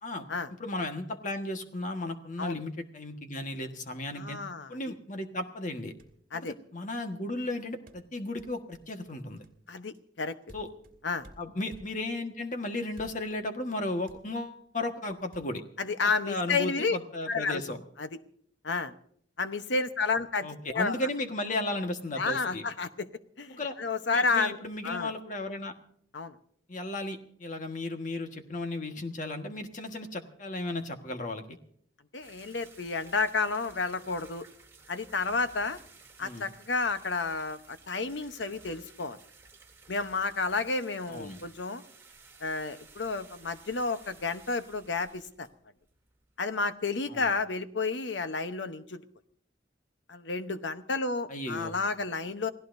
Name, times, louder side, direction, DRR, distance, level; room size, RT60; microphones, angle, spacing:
voice 1, 0.6-4.4 4.7-5.9 6.3-6.5 6.7-9.4 10.5-10.7 11.4-15.6 16.0-17.8 20.4-22.6 23.6-23.8 24.1-25.7 26.7-31.6 36.2-36.5 41.1-41.4 47.1-47.3 51.3-51.7, left 2 dB, 45° left, 5 dB, 1.5 m, -35 dB
voice 2, 4.2-4.7 6.3-6.5 9.7-10.3 11.0-11.3 15.8-17.0 17.3-17.6 18.0-18.1 18.6-18.9 19.4-21.1 22.2-23.1 23.4-24.6 24.8-25.1 26.1-26.4 32.1-34.4 34.9-35.8 36.2-39.2 39.9-41.8 42.4-45.5 46.4-49.0 50.1-52.5, left 4 dB, 75° left, 10 dB, 0.9 m, -31 dB
sound 1, 6.0-6.3 7.9-12.2 12.9-13.4 13.7-13.8 14.1-14.7 15.3-15.4, equal, 50° right, 2.3 m, -54 dB
sound 2, 32.2-46.5 46.8-46.9 47.1-47.2 47.7-47.8, right 4 dB, 15° right, 2.9 m, -55 dB
28.5 x 17.0 x 2.7 m, 0.63 s
head